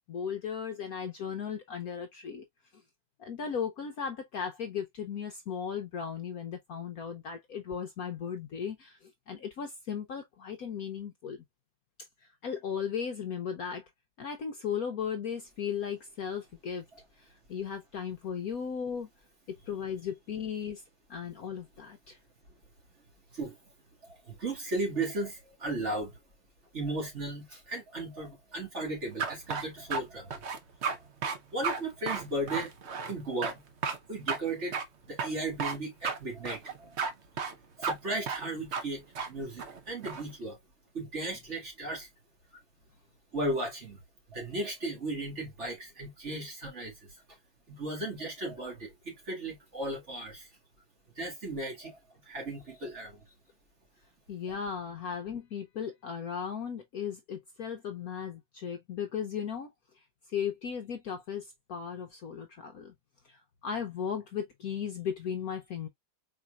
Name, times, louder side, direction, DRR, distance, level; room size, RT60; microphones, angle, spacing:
voice 1, 0.1-2.4 2.7-2.8 3.2-11.4 12.2-13.9 14.2-16.8 17.1-19.1 19.5-20.8 21.1-22.2 54.3-59.7 60.3-62.9 63.2-65.9, left 7 dB, 60° left, 1.0 m, -36 dB
voice 2, 24.0-26.2 26.7-30.4 30.9-31.0 31.5-32.7 33.1-33.6 34.1-37.0 37.8-40.6 40.9-42.1 43.3-44.0 44.3-47.1 47.7-50.5 51.2-53.3, right 2 dB, 35° right, 2.3 m, -36 dB
sound 1, 29.2-30.0 30.3-31.0 31.2-31.4 31.6-31.8 32.1-33.1 33.4-33.5 33.8-34.0 34.3-34.4 34.7-34.8 35.2-35.8 36.0-36.2 36.5-37.1 37.4-37.5 37.8-37.9 38.3-38.4 38.7-38.8 39.2-39.3 39.6-40.2, right 5 dB, 55° right, 0.7 m, -32 dB
4.7 x 4.2 x 2.3 m
omnidirectional pair, 2.1 m